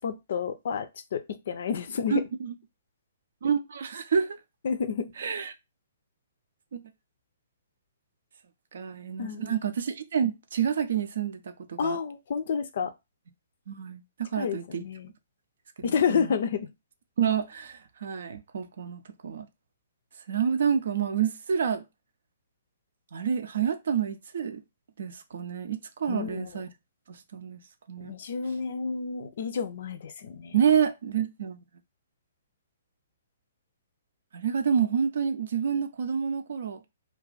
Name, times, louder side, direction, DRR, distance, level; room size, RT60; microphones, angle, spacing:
voice 1, 0.0-2.2 4.6-5.1 9.2-9.6 11.8-12.9 14.4-15.1 15.8-16.7 26.1-26.5 28.0-30.6, left 6 dB, 50° left, 0.4 m, -30 dB
voice 2, 2.1-2.5 3.4-4.4 5.2-5.5 6.7-6.8 8.7-12.0 13.7-14.8 15.8-16.3 17.2-19.5 20.3-21.8 23.1-24.6 25.0-26.7 27.1-27.6 27.9-28.1 30.5-31.6 34.3-36.8, right 7 dB, 55° right, 0.5 m, -28 dB
2.4 x 2.3 x 3.8 m
figure-of-eight pair, 120°, 0 cm